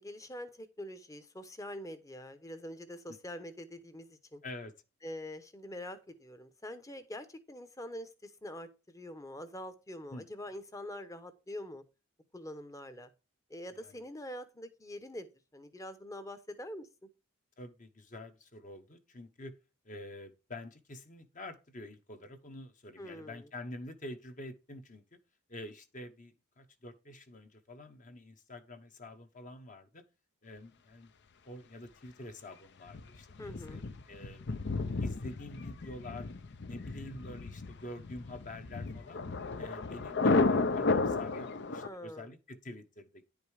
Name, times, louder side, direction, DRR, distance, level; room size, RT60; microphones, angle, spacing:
voice 1, 0.0-4.4 5.0-11.8 12.3-13.1 13.5-15.3 15.5-16.9 23.0-23.5 33.4-33.8 41.8-42.3, left 1 dB, 15° left, 0.9 m, -45 dB
voice 2, 4.4-4.7 10.1-10.3 13.8-14.0 17.6-19.5 19.8-25.2 25.5-30.0 30.4-31.1 31.4-34.5 34.8-36.3 36.6-39.2 39.6-43.3, left 1 dB, 35° left, 1.0 m, -47 dB
Thunder, 32.9-41.9, left 3 dB, 55° left, 0.6 m, -33 dB
10.0 x 5.2 x 4.9 m
head